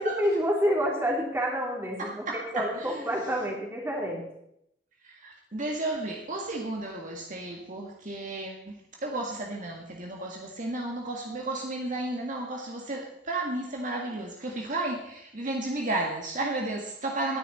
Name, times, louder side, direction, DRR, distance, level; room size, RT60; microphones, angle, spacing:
voice 1, 0.0-4.2, equal, 15° right, -1 dB, 3.3 m, -28 dB
voice 2, 2.0-2.9 5.0-8.8 9.0-17.4, right 2 dB, 45° right, 0 dB, 1.8 m, -33 dB
19.5 x 10.0 x 4.2 m, 0.77 s
head